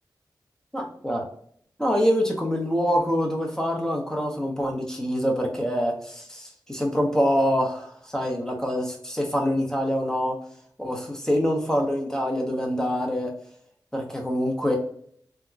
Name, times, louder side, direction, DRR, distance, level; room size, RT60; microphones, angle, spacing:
voice 1, 0.7-1.2 1.8-10.3 10.8-13.3 13.9-14.8, equal, 5° left, 0 dB, 1.0 m, -25 dB
3.5 x 2.9 x 2.4 m, 0.62 s
wide cardioid pair, 60°, 8 cm